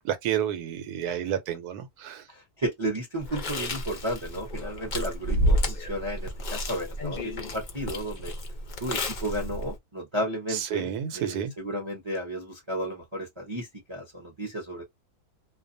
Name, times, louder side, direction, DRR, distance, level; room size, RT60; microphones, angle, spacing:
voice 1, 0.0-2.2 10.5-11.5, right 10 dB, 85° right, 1.1 m, -30 dB
voice 2, 2.3-8.3 8.8-14.8, right 1 dB, 30° right, 0.6 m, -33 dB
Chewing mastication, 3.2-9.8, equal, 60° left, 0.4 m, -30 dB
2.5 x 2.2 x 2.6 m
omnidirectional pair, 1.6 m